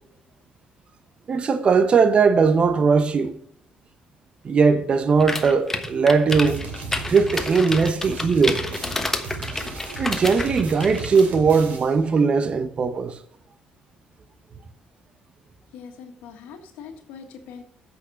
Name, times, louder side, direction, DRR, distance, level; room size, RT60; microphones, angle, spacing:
voice 1, 1.3-3.3 4.4-6.6 7.1-8.6 10.0-13.2, right 5 dB, 40° right, 0.8 m, -19 dB
sound 1, 5.2-11.2, left 2 dB, 15° left, 1.2 m, -30 dB
sound 2, 6.3-12.0, right 4 dB, 70° right, 2.8 m, -36 dB
voice 2, 15.7-17.6, left 6 dB, 90° left, 1.6 m, -42 dB
8.6 x 6.3 x 6.2 m
cardioid pair, 100°, 3 cm